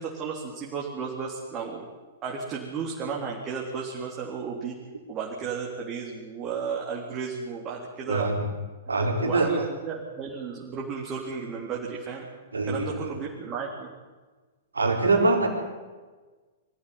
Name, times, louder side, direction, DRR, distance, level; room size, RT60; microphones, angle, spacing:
voice 1, 0.0-1.8 2.2-4.8 5.1-8.3 9.0-12.3 12.7-13.9, right 5 dB, 30° right, -3 dB, 3.8 m, -34 dB
voice 2, 8.1-8.5 8.9-9.5 12.5-13.1 14.7-15.5, right 2 dB, 75° right, 3 dB, 4.2 m, -24 dB
23.5 x 14.5 x 9.7 m, 1.3 s
figure-of-eight pair, 105°, 0 cm